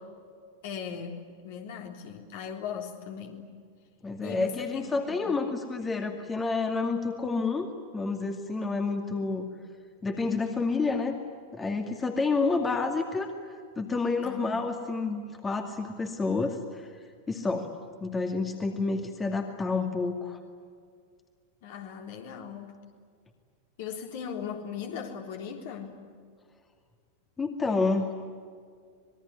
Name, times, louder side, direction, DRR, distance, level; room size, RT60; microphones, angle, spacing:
voice 1, 0.6-3.5 4.2-5.4 14.2-14.7 21.6-22.7 23.8-26.0, left 7 dB, 50° left, 3 dB, 3.7 m, -39 dB
voice 2, 4.0-7.7 7.9-9.5 10.0-11.2 11.5-13.3 13.8-16.9 17.3-17.7 18.0-20.4 27.4-28.1, left 3 dB, 15° left, 5 dB, 2.3 m, -29 dB
26.0 x 21.5 x 9.8 m, 2.1 s
figure-of-eight pair, 90°, 0 cm